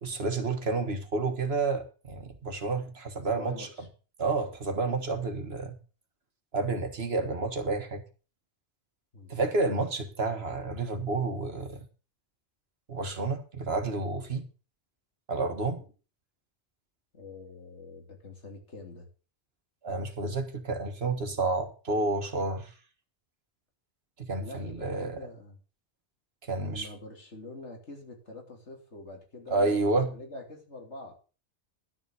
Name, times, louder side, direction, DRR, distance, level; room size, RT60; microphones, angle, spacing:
voice 1, 0.0-3.7 4.2-5.8 6.5-8.0 9.3-11.9 12.9-14.5 15.3-15.8 19.8-22.7 24.2-25.2 26.5-26.9 29.5-30.1, right 3 dB, 65° right, 6 dB, 1.8 m, -30 dB
voice 2, 3.3-3.9 9.1-9.5 17.1-19.1 24.4-25.6 26.6-31.1, left 2 dB, 85° left, 2 dB, 3.3 m, -45 dB
11.5 x 7.1 x 6.5 m, 0.35 s
omnidirectional pair, 1.1 m